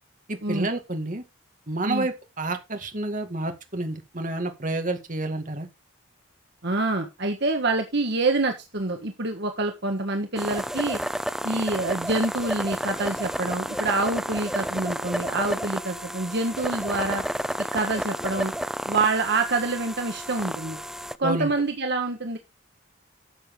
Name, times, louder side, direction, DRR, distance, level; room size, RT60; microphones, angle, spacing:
voice 1, 0.3-1.2 1.7-5.7 21.2-21.5, right 2 dB, 40° right, 2.0 m, -29 dB
voice 2, 6.6-11.0 11.4-17.2 17.7-18.5 18.9-20.8 21.2-22.4, right 3 dB, 55° right, 1.5 m, -26 dB
sound 1, 10.4-21.2, equal, ahead, 0.5 m, -31 dB
12.0 x 7.9 x 3.8 m
head